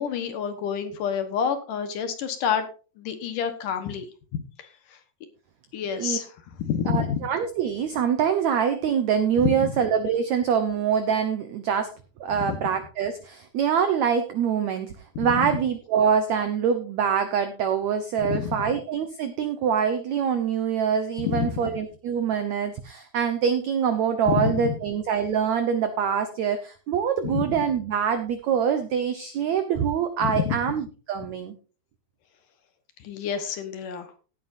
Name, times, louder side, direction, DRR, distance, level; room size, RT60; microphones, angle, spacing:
voice 1, 0.0-2.7 3.0-4.1 4.6-5.0 5.7-6.3 6.6-7.2 9.4-9.7 12.3-12.6 15.2-15.3 18.2-18.6 21.2-21.5 24.3-24.8 27.2-27.5 30.2-30.6 33.0-34.1, left 7 dB, 65° left, 8 dB, 2.5 m, -28 dB
voice 2, 6.9-11.9 12.2-31.5, right 7 dB, 75° right, 9 dB, 1.6 m, -25 dB
17.0 x 9.4 x 2.6 m, 0.35 s
omnidirectional pair, 4.5 m